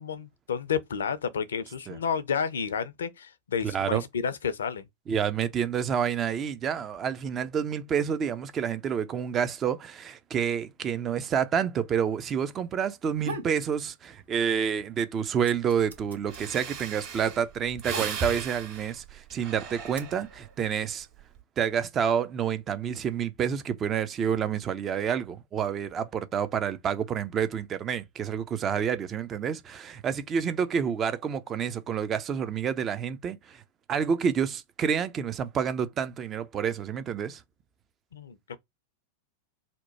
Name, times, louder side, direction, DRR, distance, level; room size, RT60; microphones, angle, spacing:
voice 1, 0.0-4.9 38.1-38.6, left 7 dB, 65° left, 0.5 m, -31 dB
voice 2, 3.6-4.0 5.1-21.1 21.6-33.6 33.9-37.4, right 7 dB, 25° right, 0.5 m, -29 dB
sound 1, 12.9-13.6 14.0-14.7 15.0-18.6 19.3-20.0, right 2 dB, 75° right, 0.9 m, -41 dB
Breathing, 16.0-16.1 16.3-20.5 21.0-21.4, right 5 dB, 40° right, 1.6 m, -37 dB
2.9 x 2.2 x 4.2 m
figure-of-eight pair, 90°, 0 cm